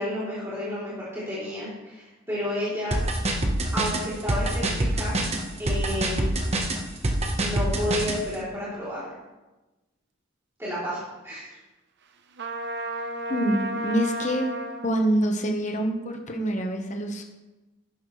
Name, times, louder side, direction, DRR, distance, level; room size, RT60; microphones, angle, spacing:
voice 1, 0.0-3.0 3.7-5.2 5.6-6.3 7.4-9.0 10.6-11.6, left 1 dB, 15° right, -10 dB, 3.2 m, -31 dB
sound 1, 2.9-8.2, right 1 dB, 30° right, 1.1 m, -25 dB
Trumpet, 12.4-14.9, right 1 dB, 55° right, 0.8 m, -32 dB
voice 2, 13.3-14.5 14.8-17.2, right 1 dB, 35° left, 3 dB, 1.2 m, -26 dB
11.5 x 10.5 x 3.2 m, 1.1 s
head